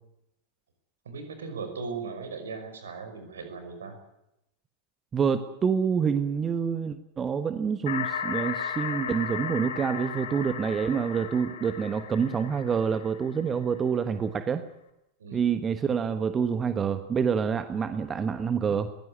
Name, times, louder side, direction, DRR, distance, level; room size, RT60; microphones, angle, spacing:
voice 1, 1.0-4.0 15.2-15.4, right 4 dB, 65° right, 7 dB, 5.9 m, -38 dB
voice 2, 5.1-14.6 15.3-18.9, right 6 dB, 20° right, 10 dB, 1.3 m, -27 dB
sound 1, 7.9-13.6, left 8 dB, 60° left, 3.5 m, -35 dB
22.0 x 16.5 x 9.9 m, 0.86 s
figure-of-eight pair, 90°, 0 cm